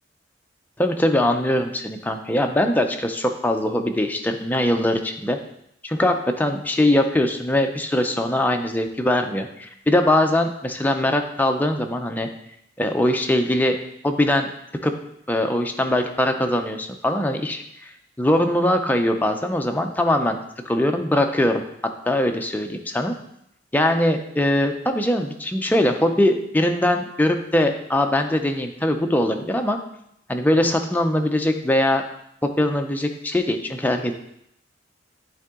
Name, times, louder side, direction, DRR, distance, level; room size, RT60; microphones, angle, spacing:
voice 1, 0.8-5.4 5.8-12.3 12.8-13.8 14.0-14.5 14.8-14.9 15.3-17.9 18.2-20.4 20.7-21.7 22.1-23.1 23.7-29.8 30.3-32.0 32.6-34.1, left 1 dB, 10° left, 4 dB, 0.5 m, -21 dB
9.3 x 3.8 x 3.6 m, 0.76 s
head